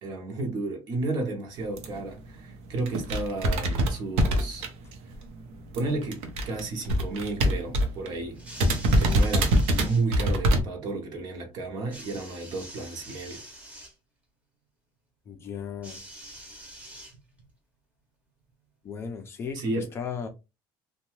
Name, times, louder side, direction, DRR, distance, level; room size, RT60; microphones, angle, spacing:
voice 1, 0.0-4.7 5.7-6.2 6.4-8.4 9.0-13.4 19.5-19.9, right 3 dB, 45° right, 0.8 m, -32 dB
sound 1, 1.8-2.0 2.5-2.6 2.8-5.1 5.4-8.1 8.3-8.4 8.6-10.6, equal, 80° right, 0.7 m, -23 dB
sound 2, 8.3-10.0 11.9-13.9 15.8-17.5 18.5-18.6, right 1 dB, 15° right, 0.8 m, -45 dB
voice 2, 15.3-16.0 18.8-20.3, left 6 dB, 25° left, 0.4 m, -36 dB
2.7 x 2.2 x 3.0 m
cardioid pair, 175°, 10 cm